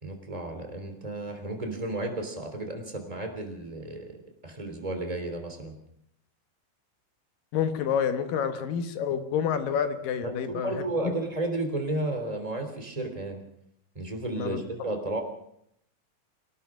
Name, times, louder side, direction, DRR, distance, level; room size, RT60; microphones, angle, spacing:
voice 1, 0.0-4.2 4.4-5.7 10.2-13.4 13.9-15.2, right 2 dB, 10° right, 4 dB, 3.0 m, -33 dB
voice 2, 7.5-10.7 11.0-11.1 14.4-14.9, left 7 dB, 75° left, 9 dB, 3.0 m, -28 dB
24.5 x 18.0 x 6.1 m, 0.73 s
omnidirectional pair, 4.0 m